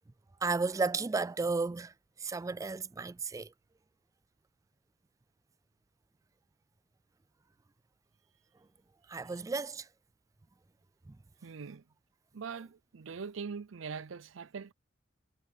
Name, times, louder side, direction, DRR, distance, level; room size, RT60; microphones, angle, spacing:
voice 1, 0.4-1.9 2.2-3.5 9.1-9.9, right 4 dB, 15° right, 0.3 m, -33 dB
voice 2, 11.4-11.8 12.3-14.7, right 5 dB, 80° right, 0.6 m, -42 dB
head